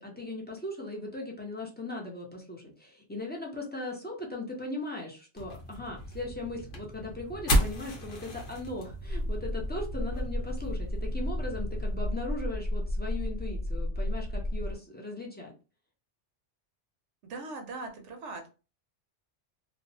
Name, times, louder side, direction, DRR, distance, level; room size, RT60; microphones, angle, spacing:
voice 1, 0.0-15.5, left 2 dB, 15° left, -2 dB, 0.3 m, -38 dB
sound 1, 5.4-12.1, equal, 55° left, 0.8 m, -34 dB
sound 2, 9.1-14.7, left 1 dB, 45° right, 0.9 m, -32 dB
voice 2, 17.2-18.5, right 3 dB, 85° right, 4 dB, 1.0 m, -40 dB
2.6 x 2.1 x 2.6 m, 0.32 s
omnidirectional pair, 1.2 m